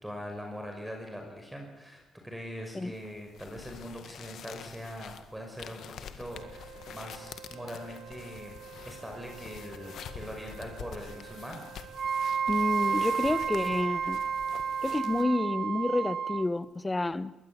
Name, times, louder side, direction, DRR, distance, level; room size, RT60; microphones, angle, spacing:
voice 1, 0.0-8.5 8.8-11.7, equal, 5° right, 2 dB, 5.8 m, -42 dB
sound 1, 2.9-15.2, left 7 dB, 70° left, 1.9 m, -47 dB
Wind instrument woodwind instrument, 6.3-15.4, right 7 dB, 80° right, 2.3 m, -49 dB
Wind instrument woodwind instrument 2, 12.0-16.5, right 6 dB, 45° right, 0.8 m, -30 dB
voice 2, 12.5-14.2 14.8-17.3, left 2 dB, 20° left, 15 dB, 1.2 m, -29 dB
22.0 x 19.0 x 8.7 m, 1.2 s
cardioid pair, 90°, 0 cm